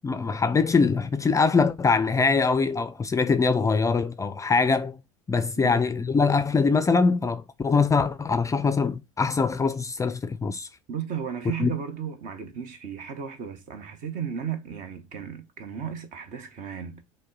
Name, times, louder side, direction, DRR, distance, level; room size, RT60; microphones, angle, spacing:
voice 1, 0.0-5.0 5.3-10.7 11.6-11.7, left 4 dB, 20° left, 0.4 m, -23 dB
voice 2, 10.9-17.0, right 8 dB, 50° right, 1.1 m, -34 dB
6.3 x 2.2 x 3.8 m
figure-of-eight pair, 75°, 17 cm